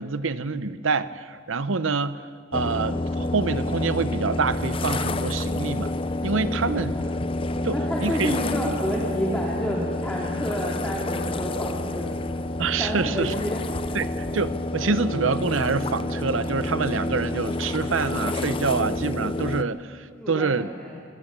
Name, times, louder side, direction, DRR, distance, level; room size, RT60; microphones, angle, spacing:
voice 1, 0.0-2.2 2.5-5.9 6.2-6.9 7.6-8.3 12.6-13.3 13.9-20.7, right 4 dB, 85° right, 13 dB, 0.8 m, -26 dB
sound 1, 2.5-19.6, left 2 dB, 25° left, 0.5 m, -29 dB
voice 2, 6.4-7.1 7.7-12.1 12.8-14.0 20.2-21.0, equal, 5° left, -5 dB, 2.5 m, -30 dB
25.5 x 15.0 x 6.8 m, 2.1 s
head